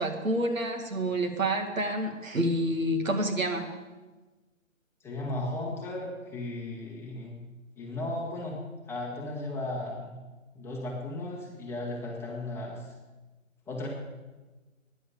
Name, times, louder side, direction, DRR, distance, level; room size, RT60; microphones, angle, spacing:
voice 1, 0.0-3.7, right 1 dB, 75° right, 4 dB, 2.3 m, -28 dB
voice 2, 5.0-7.4 7.8-8.6 8.9-10.2 10.5-12.9 13.7-13.9, left 2 dB, 5° left, -3 dB, 1.5 m, -35 dB
11.5 x 10.0 x 6.8 m, 1.2 s
figure-of-eight pair, 135°, 40 cm